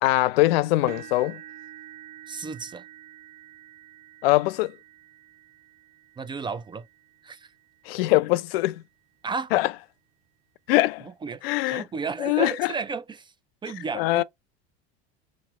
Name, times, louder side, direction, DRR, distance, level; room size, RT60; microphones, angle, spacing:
voice 1, 0.0-1.4 4.2-4.8 7.9-8.8 9.5-9.7 10.7-11.1 11.4-11.8 12.2-12.7 13.9-14.2, left 18 dB, 80° left, 0.5 m, -22 dB
sound 1, 0.9-8.9 9.5-9.8 10.2-10.3 11.7-11.8, right 12 dB, 70° right, 1.4 m, -48 dB
voice 2, 2.3-2.8 6.2-6.9 7.2-7.5 9.2-9.5 11.0-13.3 13.6-14.2, right 4 dB, 15° right, 0.3 m, -33 dB
3.5 x 3.1 x 3.0 m
supercardioid pair, 100°, 30 cm